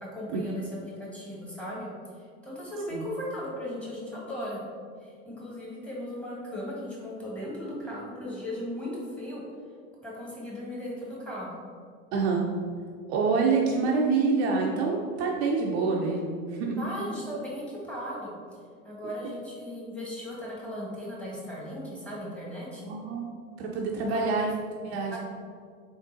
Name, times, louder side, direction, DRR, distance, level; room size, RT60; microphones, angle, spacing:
voice 1, 0.0-0.7 1.1-1.9 2.4-4.6 5.0-9.4 10.0-11.6 16.8-18.3 18.8-22.9 24.1-24.2 25.1-25.2, left 1 dB, 5° left, -5 dB, 1.0 m, -37 dB
voice 2, 12.1-12.5 13.1-16.8 22.8-24.5 24.8-25.2, right 4 dB, 50° right, -1 dB, 0.5 m, -27 dB
3.7 x 3.5 x 2.5 m, 2.1 s
figure-of-eight pair, 80°, 42 cm